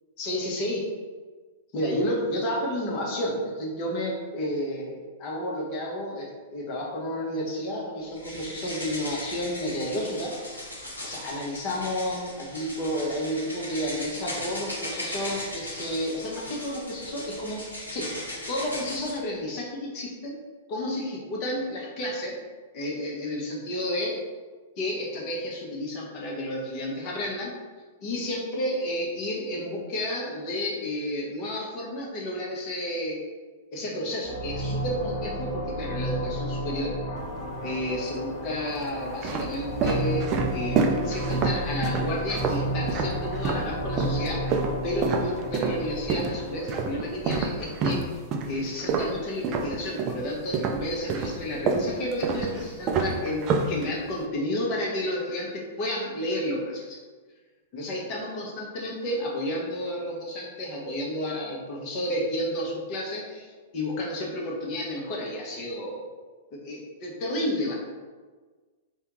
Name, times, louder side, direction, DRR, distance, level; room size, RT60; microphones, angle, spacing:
voice 1, 0.2-0.8 1.7-10.4 11.0-18.2 18.5-20.4 20.7-22.4 22.7-24.2 24.8-27.5 28.0-33.2 33.7-36.9 37.6-44.4 44.8-48.1 48.5-57.0 57.7-63.5 63.7-66.1 66.5-67.7, left 1 dB, 40° left, -3 dB, 1.0 m, -31 dB
sound 1, 8.2-19.2, left 1 dB, 90° left, 1.0 m, -38 dB
sound 2, 34.2-47.6, right 1 dB, 60° left, 1.4 m, -32 dB
sound 3, 37.2-37.9 38.6-43.7 44.0-50.2 50.5-54.2, right 4 dB, 35° right, 0.4 m, -28 dB
3.4 x 2.3 x 3.0 m, 1.4 s
figure-of-eight pair, 105°, 0 cm